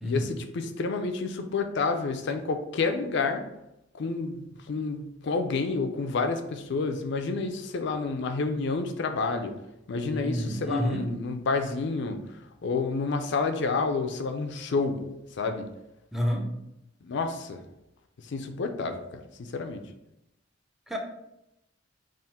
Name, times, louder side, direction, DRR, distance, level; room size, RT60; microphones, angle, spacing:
voice 1, 0.0-3.4 3.9-9.5 9.9-12.2 12.6-15.1 15.4-15.7 17.0-17.6 18.2-19.8, left 4 dB, 65° left, 6 dB, 0.4 m, -29 dB
voice 2, 10.1-11.0 16.1-16.5 20.9-21.0, equal, ahead, 2 dB, 0.5 m, -29 dB
3.6 x 2.5 x 4.1 m, 0.86 s
head